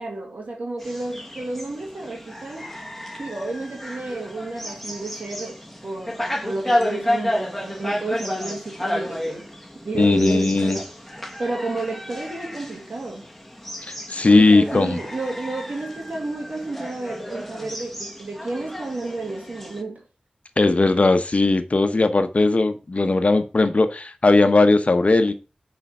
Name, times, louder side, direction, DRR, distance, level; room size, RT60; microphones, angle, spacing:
voice 1, 0.0-2.7 3.2-5.6 5.8-9.5 9.8-10.9 11.4-13.3 14.2-20.0, right 2 dB, 80° right, 2.3 m, -31 dB
sound 1, 0.8-19.8, left 1 dB, 5° left, 1.5 m, -31 dB
voice 2, 9.9-10.8 13.9-15.0 20.6-25.3, left 3 dB, 60° left, 0.9 m, -18 dB
6.8 x 4.4 x 6.2 m
cardioid pair, 40°, 3 cm